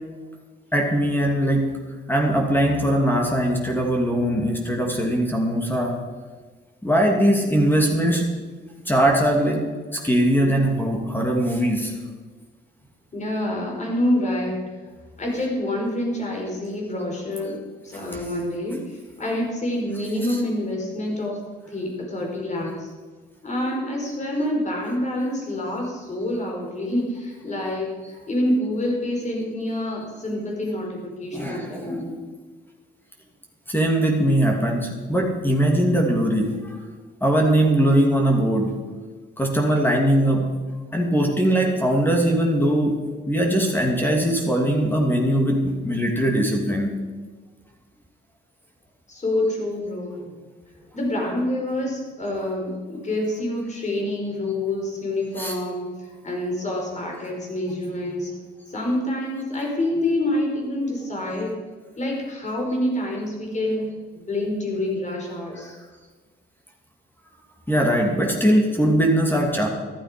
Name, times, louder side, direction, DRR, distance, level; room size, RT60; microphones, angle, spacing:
voice 1, 0.7-1.7 2.1-5.9 6.8-8.3 8.9-9.6 9.9-11.9 18.1-18.2 20.3-20.4 31.3-32.1 33.7-36.5 37.2-38.7 39.4-40.5 40.9-42.9 43.3-46.9 55.4-55.5 67.7-69.7, right 1 dB, 10° left, 1 dB, 2.6 m, -20 dB
voice 2, 13.1-14.6 15.2-17.6 17.8-18.8 19.2-21.3 21.7-22.9 23.4-27.9 28.3-32.2 49.1-50.3 50.9-55.9 56.2-58.3 58.7-61.5 62.0-63.8 64.1-65.7, left 1 dB, 35° left, 0 dB, 5.0 m, -27 dB
13.5 x 13.0 x 5.2 m, 1.4 s
cardioid pair, 90°, 20 cm